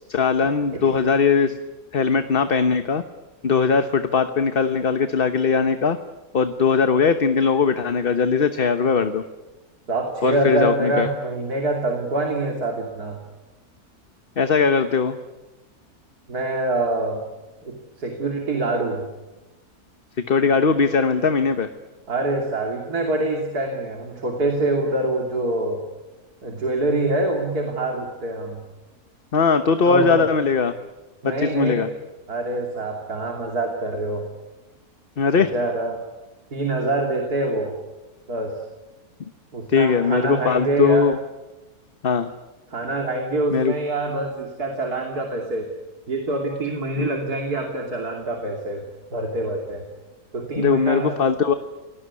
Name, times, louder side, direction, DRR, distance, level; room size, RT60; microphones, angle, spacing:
voice 1, 0.1-1.5 1.9-3.0 3.4-6.0 6.3-9.2 10.2-11.1 14.4-15.2 20.2-21.7 29.3-30.7 31.2-31.9 35.2-35.5 39.7-41.2 42.0-42.3 43.5-43.7 47.0-47.1 50.6-51.5, left 5 dB, 40° left, 9 dB, 1.2 m, -20 dB
voice 2, 9.9-13.2 16.3-17.2 17.6-19.0 22.1-25.8 26.4-28.6 29.9-30.2 31.2-31.9 32.3-34.3 35.5-36.0 36.5-37.8 38.3-38.6 39.5-41.1 42.7-45.7 46.1-48.8 49.1-49.8 50.3-51.2, right 2 dB, 85° right, 2 dB, 3.5 m, -25 dB
27.0 x 19.5 x 9.7 m, 1.1 s
omnidirectional pair, 1.6 m